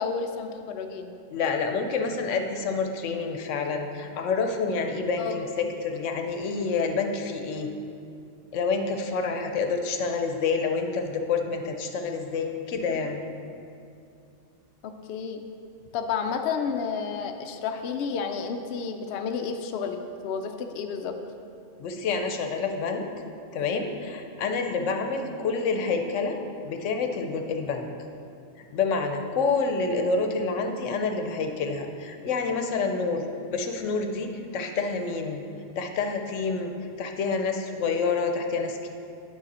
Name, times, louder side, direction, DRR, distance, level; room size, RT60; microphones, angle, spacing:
voice 1, 0.0-1.1 5.2-5.7 14.8-15.4 15.9-21.2, left 6 dB, 65° left, 5 dB, 0.7 m, -31 dB
voice 2, 1.3-7.7 8.5-13.2 21.8-23.0 23.5-26.4 26.6-27.9 28.6-33.2 33.5-35.4 35.8-38.9, left 4 dB, 85° left, 5 dB, 1.0 m, -28 dB
9.0 x 5.7 x 4.1 m, 2.5 s
omnidirectional pair, 1.2 m